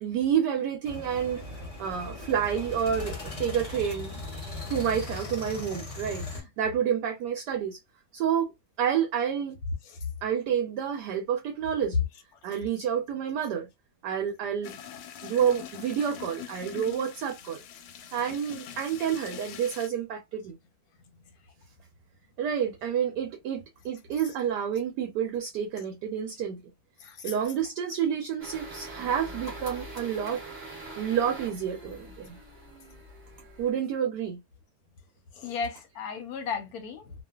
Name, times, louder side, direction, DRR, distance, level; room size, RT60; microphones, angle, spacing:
voice 1, 0.0-1.4 1.8-4.2 4.7-7.8 8.1-8.5 8.8-9.6 10.2-12.0 12.4-13.7 14.0-14.8 15.2-17.6 18.1-20.5 22.4-26.6 27.2-30.4 31.0-32.4 33.6-34.4, right 8 dB, 75° right, 1.1 m, -29 dB
sound 1, 0.8-6.4, left 2 dB, 35° left, 0.6 m, -38 dB
sound 2, 14.6-19.9, left 9 dB, 85° left, 1.3 m, -43 dB
voice 2, 27.0-27.3 35.3-37.1, left 6 dB, 65° left, 1.0 m, -36 dB
sound 3, 28.4-33.7, right 1 dB, 30° right, 0.9 m, -43 dB
2.7 x 2.4 x 2.3 m
omnidirectional pair, 2.0 m